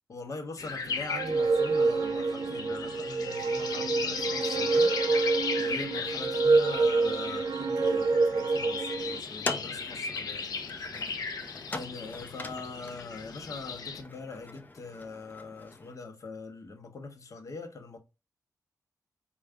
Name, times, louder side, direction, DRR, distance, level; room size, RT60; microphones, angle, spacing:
voice 1, 0.1-4.9 5.2-5.3 5.5-10.4 11.7-18.0, left 3 dB, 55° left, 0.9 m, -42 dB
sound 1, 0.6-14.0, left 5 dB, 80° left, 0.6 m, -37 dB
sound 2, 1.1-9.2, right 3 dB, 70° right, 0.4 m, -27 dB
sound 3, 9.2-16.0, left 2 dB, 25° left, 0.5 m, -42 dB
4.6 x 2.4 x 3.3 m
wide cardioid pair, 115°, 7 cm